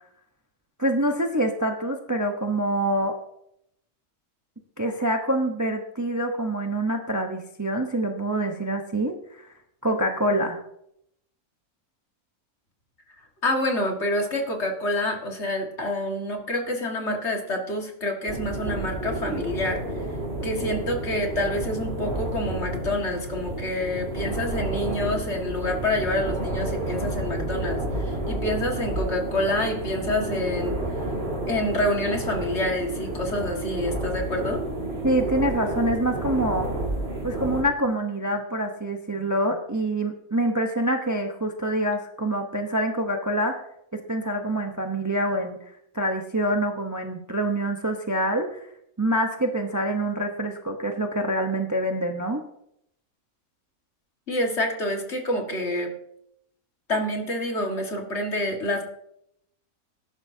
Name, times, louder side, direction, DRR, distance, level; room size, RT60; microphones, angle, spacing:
voice 1, 0.8-3.2 4.8-9.5 9.8-10.6 35.0-36.7 37.2-43.6 43.9-45.6 45.9-48.7 49.0-52.4, right 1 dB, 15° right, 3 dB, 0.8 m, -26 dB
voice 2, 13.4-19.8 20.4-30.8 31.5-34.6 54.3-55.9 56.9-58.8, left 1 dB, 50° left, 1 dB, 2.2 m, -27 dB
sound 1, 18.3-37.6, right 1 dB, 40° right, 2.4 m, -30 dB
19.0 x 11.0 x 2.8 m, 0.75 s
omnidirectional pair, 1.5 m